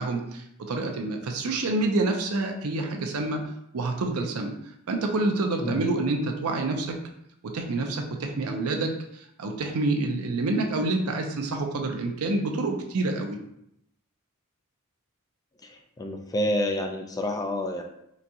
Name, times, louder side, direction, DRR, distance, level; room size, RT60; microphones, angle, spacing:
voice 1, 0.0-3.4 3.7-4.5 4.9-7.0 7.4-13.4, right 2 dB, 75° right, 4 dB, 0.5 m, -27 dB
voice 2, 16.0-17.8, left 1 dB, 15° left, 3 dB, 0.3 m, -28 dB
3.9 x 2.3 x 2.7 m, 0.76 s
head